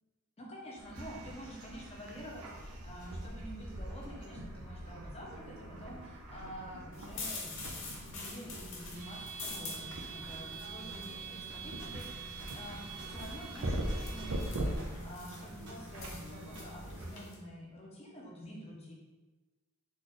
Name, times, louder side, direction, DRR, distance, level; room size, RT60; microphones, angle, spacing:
voice 1, 0.4-12.8 13.1-18.9, equal, 30° left, -3 dB, 0.9 m, -48 dB
sound 1, 0.8-17.2, right 1 dB, 80° right, 0.7 m, -42 dB
sound 2, 6.9-17.3, left 3 dB, 60° left, 1.0 m, -47 dB
sound 3, 7.6-9.8 10.0-15.1 15.4-16.6, right 1 dB, 55° right, 1.1 m, -52 dB
3.9 x 3.2 x 3.8 m, 1.2 s
head